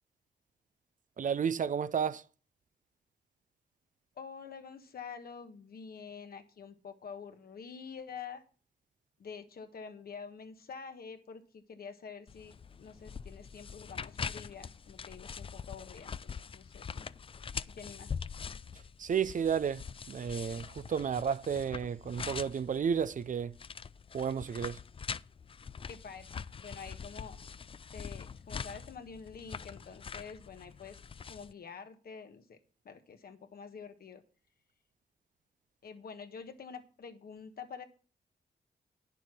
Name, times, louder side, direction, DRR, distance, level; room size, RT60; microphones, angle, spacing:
voice 1, 1.2-2.2 19.0-23.5 24.1-24.8, right 7 dB, 50° right, 0.5 m, -32 dB
voice 2, 4.2-8.4 9.2-17.1 17.6-18.1 25.9-27.4 27.9-31.0 31.3-32.6 32.8-34.2 35.8-37.8, left 6 dB, 65° left, 1.4 m, -47 dB
sound 1, 12.3-31.5, left 6 dB, 35° left, 0.4 m, -44 dB
9.6 x 6.8 x 6.0 m
cardioid pair, 65°, 17 cm